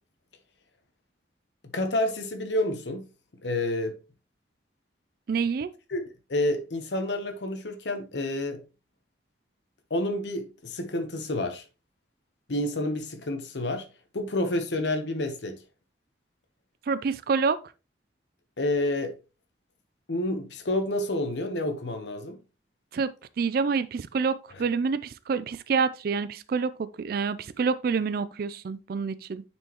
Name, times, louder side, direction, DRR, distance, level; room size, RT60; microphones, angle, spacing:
voice 1, 1.7-3.0 3.4-3.9 5.9-6.0 6.3-8.6 9.9-11.6 12.5-13.9 14.1-15.6 18.6-19.2 20.1-22.4, left 1 dB, 75° left, 0.9 m, -29 dB
voice 2, 5.3-5.7 16.9-17.6 22.9-23.1 23.4-29.4, right 5 dB, 55° right, 0.4 m, -27 dB
9.3 x 4.5 x 2.9 m
head